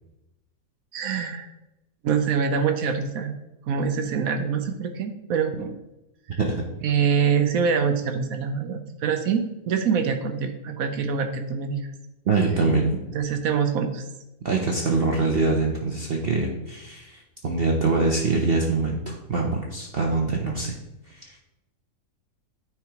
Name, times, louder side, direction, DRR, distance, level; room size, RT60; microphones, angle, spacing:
voice 1, 0.9-1.5 2.0-3.3 3.7-5.8 6.8-11.9 13.1-14.0, right 6 dB, 70° right, 7 dB, 1.0 m, -25 dB
voice 2, 12.3-12.9 14.4-20.8 21.1-21.4, right 3 dB, 50° right, 0 dB, 0.7 m, -24 dB
9.3 x 4.6 x 2.9 m, 0.93 s
omnidirectional pair, 1.7 m